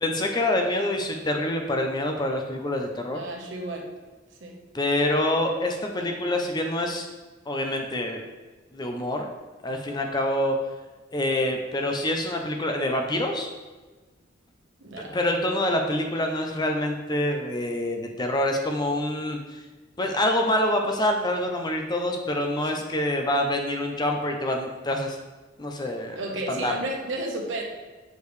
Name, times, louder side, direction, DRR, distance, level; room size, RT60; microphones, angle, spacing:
voice 1, 0.0-3.2 4.7-7.1 7.5-8.2 8.7-9.3 9.6-10.6 11.1-13.5 15.1-19.6 20.0-25.2 25.6-26.2 26.5-26.7, left 1 dB, 20° left, 3 dB, 0.6 m, -26 dB
voice 2, 3.1-3.9 4.4-4.6 14.8-15.2 22.6-22.7 25.8-27.6, right 2 dB, 70° right, 0 dB, 1.1 m, -33 dB
6.5 x 5.1 x 3.2 m, 1.3 s
head